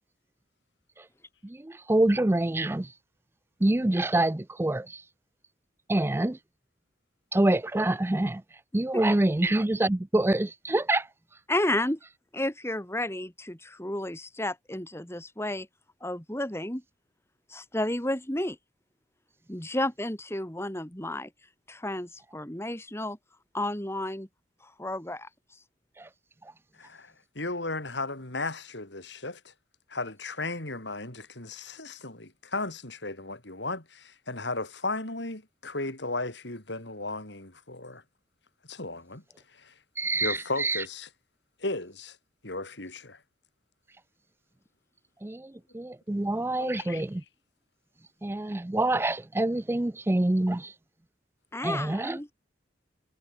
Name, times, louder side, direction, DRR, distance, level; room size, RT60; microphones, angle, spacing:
voice 1, 1.9-2.9 3.6-4.8 5.9-6.4 7.3-8.4 8.7-11.0 40.0-40.8 45.2-45.4 45.7-47.2 48.2-50.7 51.6-52.2, right 1 dB, 15° right, 0.4 m, -26 dB
voice 2, 11.5-12.0 12.3-15.7 16.0-16.8 17.5-18.6 19.5-21.3 21.7-23.2 23.5-24.3 24.6-25.3 51.5-52.3, left 1 dB, 15° left, 2.5 m, -32 dB
voice 3, 26.8-29.5 29.9-38.0 38.7-39.2 39.5-39.7 40.2-41.1 41.6-42.2 42.4-43.2 46.6-47.0, left 2 dB, 70° left, 4.4 m, -35 dB
head